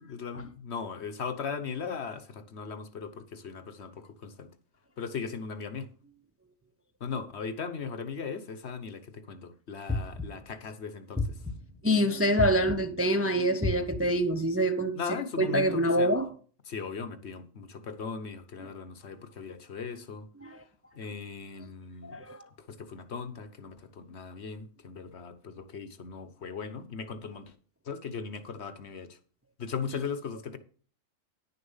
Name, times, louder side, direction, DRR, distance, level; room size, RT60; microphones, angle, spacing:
voice 1, 0.0-4.5 5.0-5.9 7.0-11.4 14.9-16.1 16.6-20.3 20.9-22.1 22.6-27.5 27.8-29.2 29.6-30.6, left 5 dB, 60° left, 1.2 m, -38 dB
sound 1, 9.9-10.5 11.1-11.8 12.4-13.0 13.6-14.3, left 2 dB, 5° left, 1.2 m, -33 dB
voice 2, 11.8-15.0 15.4-16.3 20.4-20.6 22.0-22.5, equal, 15° right, 0.6 m, -26 dB
10.5 x 6.8 x 5.5 m
omnidirectional pair, 1.3 m